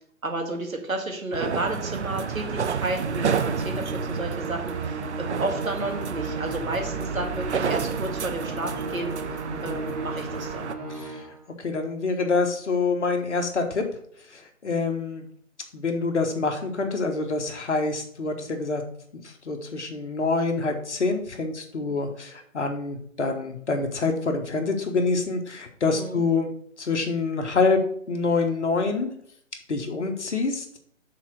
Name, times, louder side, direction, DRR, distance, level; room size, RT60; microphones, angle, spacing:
voice 1, 0.2-9.1 9.6-10.7 25.9-26.2, right 2 dB, 80° right, 2 dB, 1.8 m, -32 dB
sound 1, 1.3-10.7, right 6 dB, 55° right, 0.6 m, -31 dB
Musical instrument, 3.0-11.5, right 2 dB, 30° right, 1.5 m, -35 dB
voice 2, 9.5-9.8 10.9-11.3 11.6-13.8 14.3-15.3 15.7-18.8 19.2-26.5 26.8-27.8 28.1-29.1 29.7-30.8, left 4 dB, 60° left, 4 dB, 1.4 m, -26 dB
6.1 x 3.9 x 6.0 m, 0.65 s
figure-of-eight pair, 145°, 40 cm